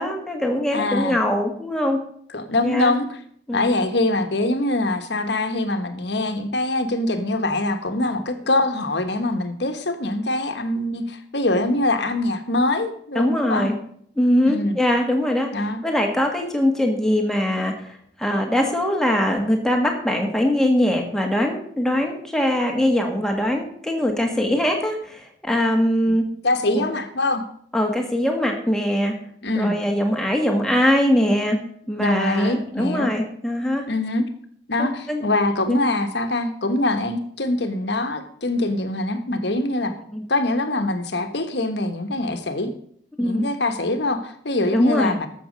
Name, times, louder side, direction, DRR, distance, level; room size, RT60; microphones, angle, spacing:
voice 1, 0.0-2.0 2.6-2.9 3.5-3.7 13.2-13.8 14.2-15.5 15.8-26.3 26.7-26.9 27.7-29.2 29.6-31.6 31.9-33.8 34.8-35.2 35.7-35.8 40.1-40.2 43.2-43.5 44.7-45.2, left 1 dB, 5° left, 1 dB, 1.7 m, -22 dB
voice 2, 0.7-1.2 2.3-3.1 3.5-13.7 14.4-14.8 15.5-15.8 26.1-26.2 26.4-27.4 29.4-29.8 32.0-33.1 33.9-34.2 34.7-39.9 40.3-42.7 43.2-45.3, left 2 dB, 65° left, 8 dB, 1.3 m, -23 dB
12.5 x 7.3 x 5.2 m, 0.64 s
head